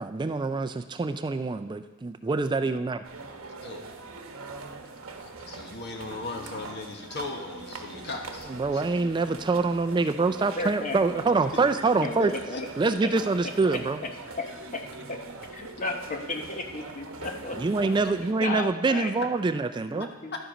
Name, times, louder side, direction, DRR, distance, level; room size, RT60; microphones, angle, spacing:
voice 1, 0.0-3.0 8.5-12.3 12.8-14.0 17.6-20.1, right 3 dB, 20° right, 10 dB, 0.3 m, -25 dB
sound 1, 3.0-18.3, right 3 dB, 70° right, 1.0 m, -42 dB
voice 2, 5.2-8.9 12.2-12.6 13.4-13.5 18.4-18.5, left 3 dB, 50° left, 3 dB, 1.3 m, -38 dB
voice 3, 10.3-11.3 11.6-11.7 12.0-12.7 13.0-13.1 13.4-14.1 14.4-18.1 18.4-19.1 19.9-20.3, left 2 dB, 35° left, 4 dB, 0.9 m, -35 dB
11.5 x 7.9 x 5.0 m, 1.1 s
head